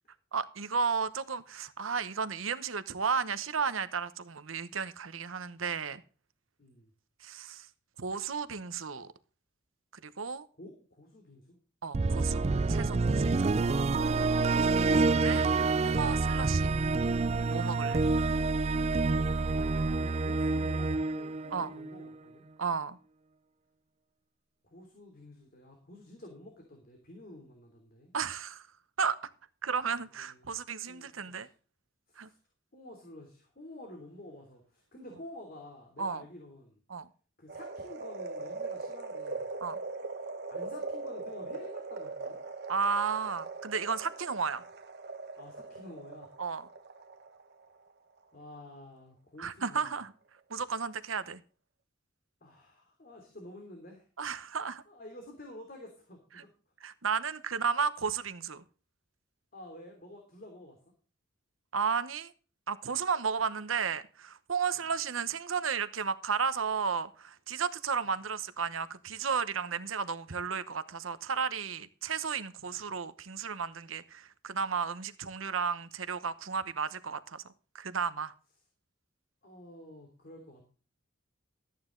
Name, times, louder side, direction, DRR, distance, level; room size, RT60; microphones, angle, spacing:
voice 1, 0.3-6.0 7.2-7.7 8.0-9.1 10.0-10.5 11.8-12.4 12.7-13.3 14.5-15.5 15.8-16.7 17.5-18.0 21.5-21.7 22.6-23.0 28.1-28.6 29.0-29.2 29.6-31.5 32.2-32.3 36.0-36.2 36.9-37.1 39.6-39.8 42.7-44.6 46.4-46.7 49.4-50.1 50.5-51.4 54.2-54.8 56.4-56.5 56.8-58.6 61.7-62.3 62.7-77.4 77.7-78.3, right 6 dB, 90° right, 1.0 m, -33 dB
voice 2, 6.6-6.9 10.6-11.6 20.0-22.4 24.6-28.1 30.2-30.5 30.9-31.5 32.1-32.3 32.7-36.8 37.4-39.5 40.5-42.4 45.4-46.4 48.3-49.8 52.4-54.1 54.9-56.5 59.5-60.8 64.7-64.8 72.6-72.8 79.4-80.6, left 1 dB, 50° left, 3.1 m, -50 dB
sound 1, 11.9-22.1, right 3 dB, 35° right, 0.4 m, -28 dB
sound 2, 37.5-47.8 48.2-48.3, right 3 dB, 55° right, 1.2 m, -41 dB
14.0 x 9.5 x 3.9 m
head